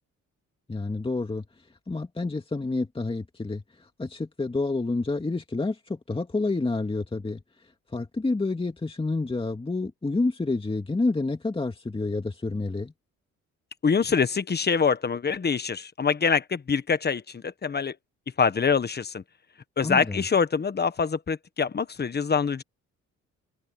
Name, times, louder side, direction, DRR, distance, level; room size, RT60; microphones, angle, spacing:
voice 1, 0.7-1.5 1.9-7.4 7.9-12.9 19.8-20.2, left 3 dB, 20° left, 2.5 m, -29 dB
voice 2, 13.8-17.9 18.4-19.2 19.8-22.6, left 5 dB, 35° left, 1.4 m, -25 dB
cardioid pair, 90°, 30 cm